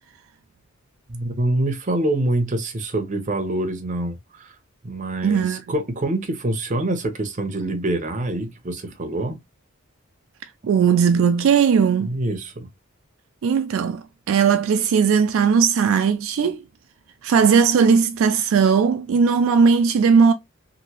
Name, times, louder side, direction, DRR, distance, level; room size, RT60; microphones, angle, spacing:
voice 1, 1.1-4.5 4.8-9.4 12.0-12.7, right 1 dB, 35° right, 0.6 m, -25 dB
voice 2, 5.2-5.6 10.7-12.1 13.4-16.6 17.2-20.3, right 6 dB, 70° right, 0.3 m, -18 dB
2.9 x 2.6 x 2.8 m
head